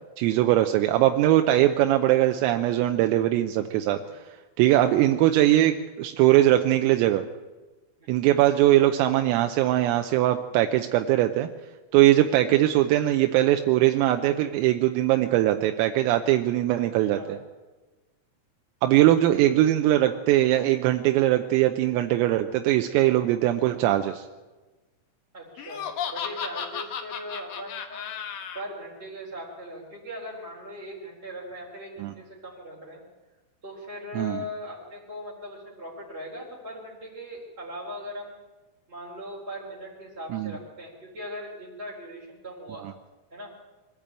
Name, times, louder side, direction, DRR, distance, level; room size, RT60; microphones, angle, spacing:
voice 1, 0.2-4.0 4.6-7.2 8.1-11.5 11.9-17.4 18.8-24.3 32.0-32.1 34.2-34.4 40.3-40.5, right 14 dB, 85° right, 6 dB, 3.4 m, -21 dB
voice 2, 16.8-17.3 22.9-23.1 25.3-28.1 28.5-33.0 33.6-38.4 38.9-42.8 43.3-43.5, equal, 15° right, -5 dB, 3.4 m, -39 dB
Laughter, 25.6-28.6, left 8 dB, 70° left, 2.2 m, -34 dB
23.5 x 14.0 x 8.9 m, 1.2 s
omnidirectional pair, 6.0 m